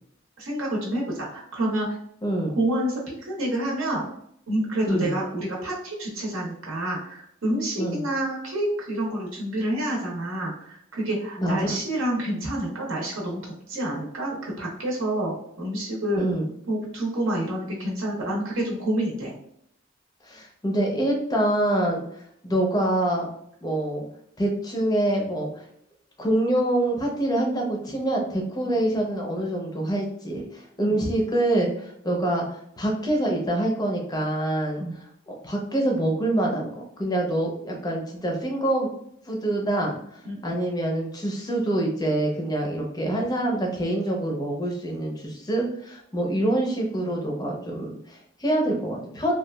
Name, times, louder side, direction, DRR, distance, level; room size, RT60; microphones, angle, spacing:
voice 1, 0.4-1.9 2.6-4.0 4.5-16.2 16.7-19.3 30.8-31.0 34.8-34.9 40.2-40.4, right 1 dB, 70° right, -2 dB, 0.7 m, -28 dB
voice 2, 2.2-2.5 4.9-5.1 7.8-8.0 11.4-11.7 16.2-16.5 20.2-22.0 22.4-23.3 23.6-24.0 24.4-25.5 26.2-34.8 35.3-36.7 37.0-38.9 39.3-49.3, right 1 dB, 20° left, 0 dB, 0.5 m, -25 dB
2.9 x 2.3 x 2.2 m, 0.70 s
head